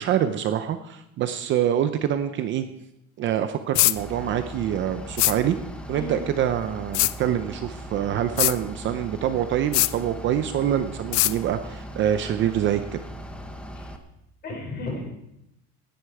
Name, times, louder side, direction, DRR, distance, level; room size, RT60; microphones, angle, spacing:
voice 1, 0.0-2.7 3.2-5.6 5.9-13.0, right 10 dB, 35° right, 9 dB, 0.6 m, -25 dB
sound 1, 3.8-4.0 5.2-5.4 6.9-7.1 8.4-8.6 9.7-9.9 11.1-11.3, left 21 dB, 65° left, 0.5 m, -20 dB
Bus / Idling, 4.0-14.0, equal, 5° left, 0.9 m, -39 dB
voice 2, 5.9-6.2 13.8-13.9 14.4-15.0, left 2 dB, 30° left, 0 dB, 5.4 m, -33 dB
18.0 x 9.7 x 4.8 m, 0.84 s
cardioid pair, 170°, 32 cm